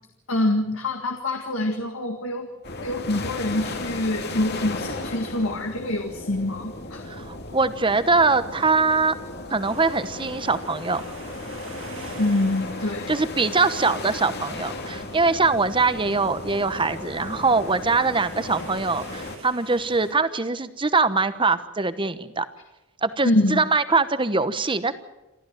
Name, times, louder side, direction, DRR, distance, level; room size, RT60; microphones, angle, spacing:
voice 1, 0.3-2.5 2.8-7.1 12.2-13.2 23.2-23.6, left 1 dB, 75° left, 5 dB, 1.8 m, -25 dB
sound 1, 2.6-19.4, left 2 dB, 50° left, 2.3 m, -35 dB
voice 2, 7.1-9.1 9.5-11.0 13.1-22.4 23.0-24.9, right 4 dB, 25° right, 13 dB, 1.0 m, -22 dB
sound 2, 9.6-20.1, right 2 dB, 80° right, 6.4 m, -46 dB
28.0 x 13.5 x 7.9 m, 1.0 s
head